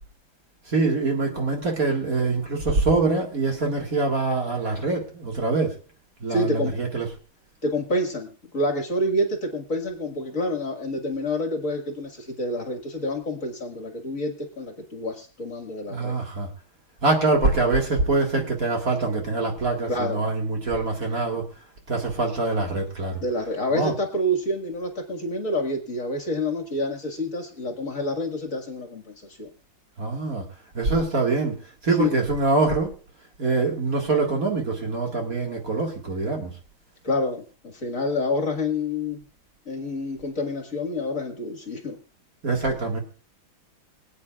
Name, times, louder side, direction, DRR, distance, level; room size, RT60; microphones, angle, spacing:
voice 1, 0.7-5.8 6.2-7.1 15.9-16.5 17.0-21.5 21.9-23.2 23.7-23.9 30.0-30.5 30.7-31.5 31.8-32.9 33.4-36.5 42.4-43.0, right 3 dB, 45° right, 1 dB, 2.2 m, -24 dB
voice 2, 6.3-6.7 7.6-16.2 19.9-20.2 23.2-29.0 29.3-29.5 32.0-32.2 37.0-39.2 39.7-42.0, left 1 dB, 40° left, 3 dB, 2.1 m, -28 dB
25.0 x 9.0 x 2.4 m, 0.38 s
omnidirectional pair, 2.2 m